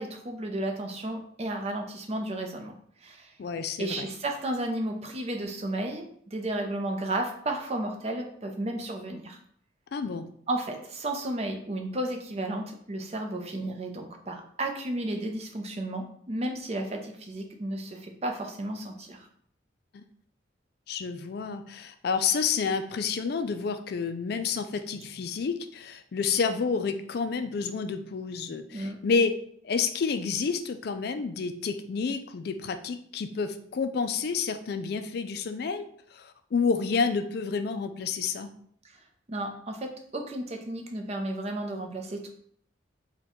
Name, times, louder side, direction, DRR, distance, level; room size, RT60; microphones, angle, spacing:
voice 1, 0.0-2.7 3.0-3.3 3.8-9.4 10.5-19.3 28.7-29.0 39.3-42.3, right 1 dB, 30° right, 4 dB, 0.5 m, -33 dB
voice 2, 3.4-4.1 9.9-10.3 19.9-20.0 20.9-29.3 29.6-35.9 36.1-38.5, left 5 dB, 55° left, 9 dB, 0.3 m, -29 dB
3.7 x 2.2 x 4.3 m, 0.62 s
head